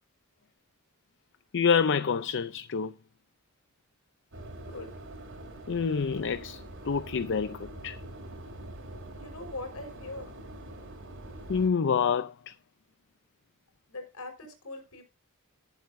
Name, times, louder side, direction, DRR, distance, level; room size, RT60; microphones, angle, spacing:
voice 1, 1.5-2.9 5.7-8.0 11.5-12.5, left 6 dB, 55° left, 0.5 m, -27 dB
sound 1, 4.3-11.7, right 1 dB, 65° right, 4.2 m, -44 dB
voice 2, 9.1-10.3 13.9-15.0, left 2 dB, 75° left, 5.1 m, -41 dB
19.5 x 8.0 x 2.7 m
head